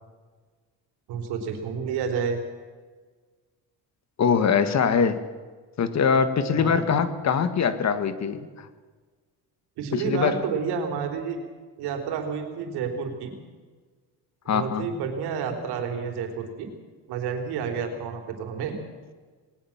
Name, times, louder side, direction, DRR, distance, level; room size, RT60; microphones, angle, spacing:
voice 1, 1.1-2.4 6.5-6.9 9.8-11.4 11.8-13.3 14.5-16.7 17.1-18.8, right 6 dB, 90° right, 5 dB, 3.8 m, -30 dB
voice 2, 4.2-5.2 5.8-8.7 9.9-10.4 14.5-14.9, left 6 dB, 45° left, 11 dB, 1.8 m, -23 dB
20.0 x 19.0 x 7.3 m, 1.4 s
cardioid pair, 115°, 38 cm